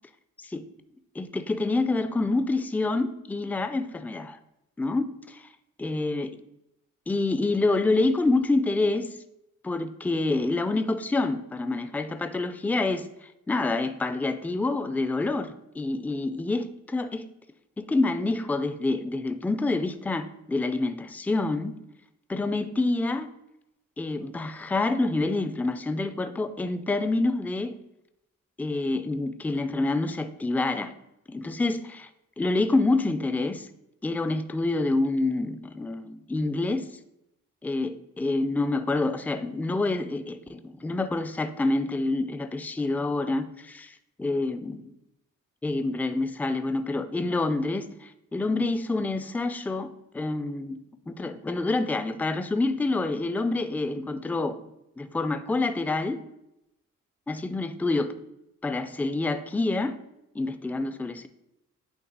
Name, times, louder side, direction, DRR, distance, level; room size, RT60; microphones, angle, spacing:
voice 1, 1.2-4.4 4.8-5.4 5.8-6.3 7.1-9.2 9.6-13.1 13.5-17.2 17.8-21.8 22.3-23.3 24.0-27.7 28.6-30.9 31.3-32.1 32.4-33.7 34.0-36.9 37.6-44.9 45.6-50.8 51.1-54.6 55.0-56.2 57.3-58.1 58.6-60.0 60.4-61.3, left 2 dB, 5° left, 10 dB, 0.3 m, -27 dB
8.6 x 3.0 x 3.9 m, 0.86 s
cardioid pair, 90°, 33 cm